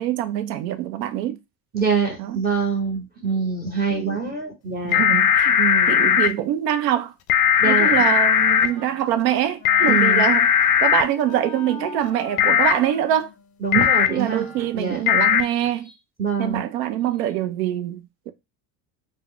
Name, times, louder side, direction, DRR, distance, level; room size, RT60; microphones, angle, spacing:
voice 1, 0.0-1.4 2.2-2.4 3.9-4.3 4.8-5.6 5.9-7.1 7.6-10.5 10.8-13.3 14.1-15.9 16.4-18.3, right 12 dB, 85° right, 0.6 m, -24 dB
voice 2, 1.7-5.0 5.6-6.2 7.6-8.0 9.9-10.3 13.6-14.4 14.7-15.3 16.2-16.6, right 5 dB, 20° right, 0.8 m, -25 dB
sound 1, 4.9-6.3 7.3-8.7 9.7-11.0 12.4-12.7 13.7-14.1 15.1-15.4, left 8 dB, 55° left, 0.5 m, -17 dB
Wind instrument woodwind instrument, 8.4-14.9, left 4 dB, 15° left, 0.8 m, -41 dB
2.3 x 2.1 x 3.7 m
supercardioid pair, 85°, 48 cm